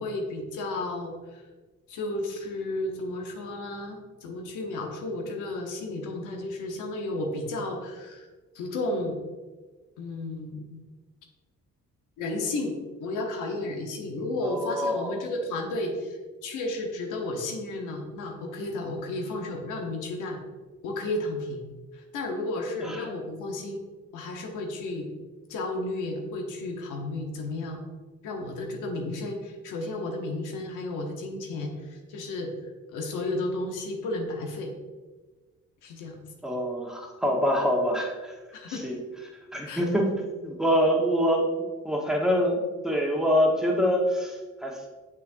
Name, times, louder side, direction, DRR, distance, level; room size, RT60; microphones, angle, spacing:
voice 1, 0.0-1.4 1.9-8.3 8.5-9.2 10.0-10.8 12.2-20.4 20.8-21.6 21.9-23.8 24.1-25.1 25.5-27.8 28.2-32.5 32.9-34.7 35.8-36.2 38.5-38.9 39.7-39.8, left 2 dB, 90° left, 2 dB, 1.1 m, -33 dB
voice 2, 14.4-15.2 22.8-23.1 36.4-38.3 38.7-39.0 39.5-40.1 40.4-44.9, equal, ahead, -2 dB, 1.2 m, -25 dB
6.9 x 5.7 x 2.6 m, 1.3 s
cardioid pair, 90°, 30 cm